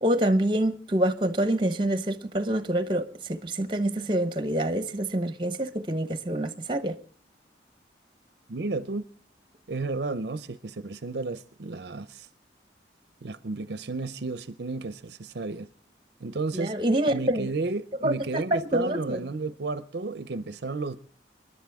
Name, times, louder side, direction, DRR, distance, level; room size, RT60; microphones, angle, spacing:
voice 1, 0.0-7.0 16.5-17.5 18.0-19.2, right 1 dB, 25° right, 1.0 m, -26 dB
voice 2, 8.5-9.0 9.7-12.3 13.2-15.7 16.2-16.7 17.1-21.0, right 3 dB, 60° right, 0.6 m, -32 dB
29.0 x 11.0 x 3.5 m
head